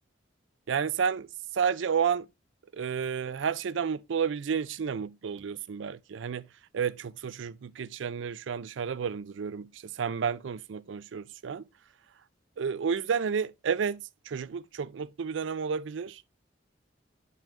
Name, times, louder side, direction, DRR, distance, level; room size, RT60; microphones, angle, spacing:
voice 1, 0.7-1.3 1.5-2.3 2.7-6.5 6.7-11.6 12.6-16.2, right 6 dB, 80° right, 0.4 m, -31 dB
7.4 x 5.5 x 3.3 m
head